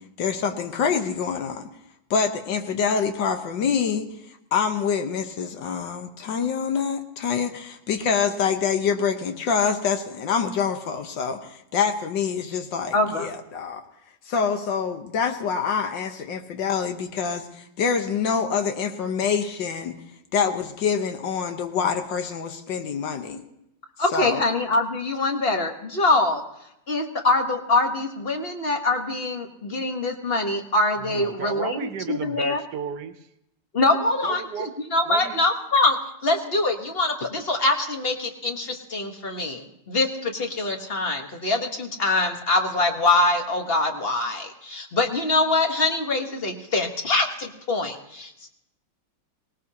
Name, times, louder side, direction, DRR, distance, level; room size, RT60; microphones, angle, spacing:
voice 1, 0.2-1.7 2.1-4.1 4.5-13.8 14.3-19.9 20.3-23.4 24.1-24.4, left 6 dB, 85° left, 7 dB, 1.8 m, -26 dB
voice 2, 12.9-13.3 24.0-26.4 26.9-32.6 33.7-48.5, left 2 dB, 35° left, 4 dB, 1.3 m, -24 dB
voice 3, 31.0-33.1 34.2-34.7 35.1-35.4, right 8 dB, 70° right, 10 dB, 1.3 m, -33 dB
19.0 x 18.5 x 2.8 m, 0.83 s
omnidirectional pair, 1.9 m